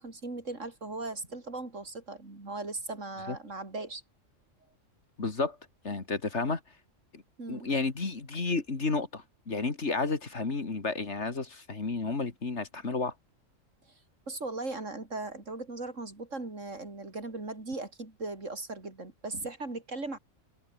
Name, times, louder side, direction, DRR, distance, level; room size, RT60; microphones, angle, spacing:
voice 1, 0.0-4.0 7.4-7.7 14.3-20.2, right 2 dB, 70° right, 4.7 m, -38 dB
voice 2, 5.2-5.6 5.8-6.6 7.1-7.2 7.5-13.1, left 3 dB, 60° left, 3.0 m, -31 dB
omnidirectional pair, 1.3 m